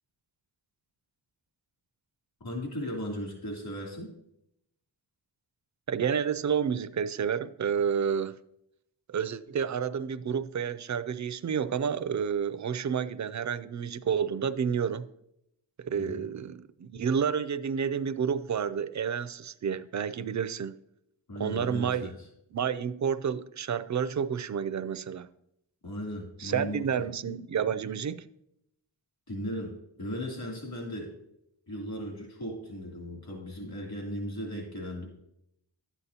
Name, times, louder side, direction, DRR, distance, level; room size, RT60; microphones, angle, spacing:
voice 1, 2.4-4.1 16.0-16.2 21.3-22.1 25.8-26.9 29.3-29.7 30.0-31.1 31.7-35.1, equal, 55° left, 2.9 m, -37 dB
voice 2, 5.9-8.4 9.1-15.1 15.8-20.7 21.4-22.1 22.5-25.3 26.4-28.2, right 7 dB, 40° right, 0.4 m, -30 dB
11.5 x 8.1 x 2.8 m
wide cardioid pair, 90°, 45 cm